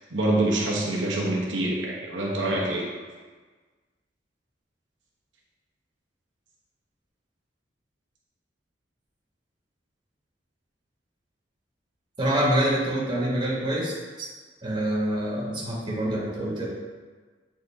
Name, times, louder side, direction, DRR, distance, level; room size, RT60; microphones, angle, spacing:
voice 1, 0.1-2.8, right 1 dB, 90° right, -3 dB, 1.1 m, -25 dB
voice 2, 12.2-13.9 14.2-14.3 14.6-16.7, right 1 dB, 25° right, -6 dB, 2.0 m, -26 dB
8.1 x 4.1 x 3.6 m, 1.4 s
head